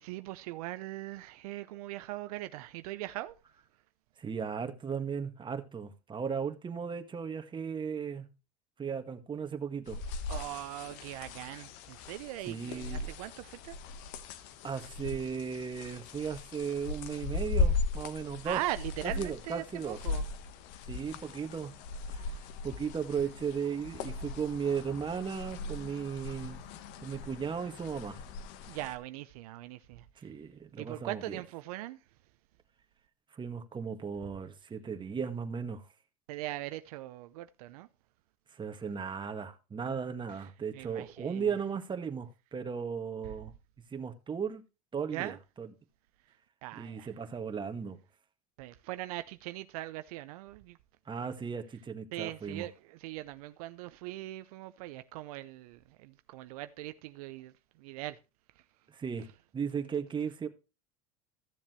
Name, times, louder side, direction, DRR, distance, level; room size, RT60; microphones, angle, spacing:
voice 1, 0.0-3.3 10.3-13.8 18.4-20.2 28.7-30.1 30.8-32.0 36.3-37.9 40.7-41.5 45.1-45.4 46.6-47.1 48.6-50.8 52.1-57.5 57.8-58.2, right 16 dB, 80° right, 0.6 m, -40 dB
voice 2, 4.2-8.3 8.8-10.0 12.5-13.1 14.6-18.6 19.0-20.0 20.9-21.8 22.1-22.3 22.6-26.6 27.0-28.2 30.2-31.4 33.3-35.9 38.5-43.5 43.9-44.6 44.9-45.7 46.8-48.0 51.1-52.7 58.9-59.3 59.5-60.5, right 6 dB, 25° right, 1.7 m, -36 dB
sound 1, 9.9-29.0, left 3 dB, 65° left, 1.2 m, -38 dB
14.5 x 7.2 x 3.0 m
hypercardioid pair, 90°, 19 cm